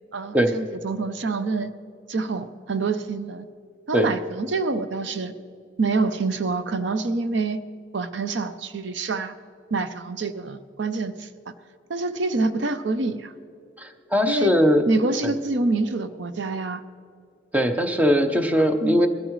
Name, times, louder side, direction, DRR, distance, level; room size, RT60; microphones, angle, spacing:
voice 1, 0.1-1.7 2.1-3.4 3.9-5.3 5.8-7.6 7.9-9.3 9.7-11.5 11.9-13.3 14.3-14.5 14.9-16.8 18.8-19.0, right 3 dB, 65° right, 11 dB, 0.6 m, -26 dB
voice 2, 13.8-14.8 17.5-19.1, equal, 10° right, 6 dB, 0.8 m, -20 dB
20.5 x 13.0 x 3.1 m, 2.5 s
head